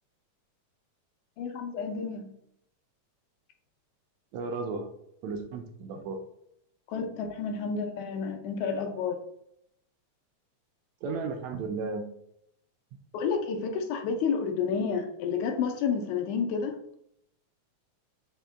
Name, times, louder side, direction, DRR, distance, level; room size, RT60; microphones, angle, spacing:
voice 1, 1.4-2.3 6.9-9.2 13.1-16.8, left 5 dB, 90° left, 5 dB, 2.1 m, -30 dB
voice 2, 4.3-4.9 5.2-6.2 11.0-12.1, right 4 dB, 80° right, 4 dB, 1.6 m, -34 dB
5.2 x 2.2 x 3.5 m, 0.75 s
omnidirectional pair, 3.3 m